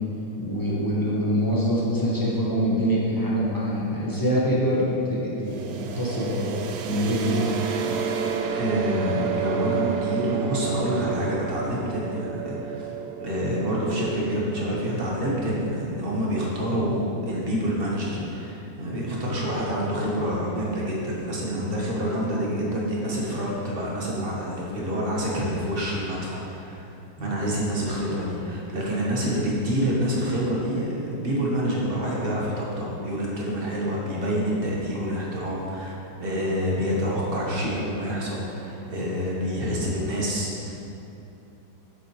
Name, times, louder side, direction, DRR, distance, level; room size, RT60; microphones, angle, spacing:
voice 1, 0.4-7.5 19.1-19.2 27.2-27.5, equal, 10° left, -7 dB, 1.3 m, -25 dB
sound 1, 5.4-17.1, right 6 dB, 70° right, 1.0 m, -31 dB
voice 2, 8.5-12.9 13.2-26.9 27.2-35.9 36.2-40.8, equal, 35° right, -4 dB, 1.4 m, -27 dB
8.1 x 7.6 x 3.2 m, 2.8 s
omnidirectional pair, 2.0 m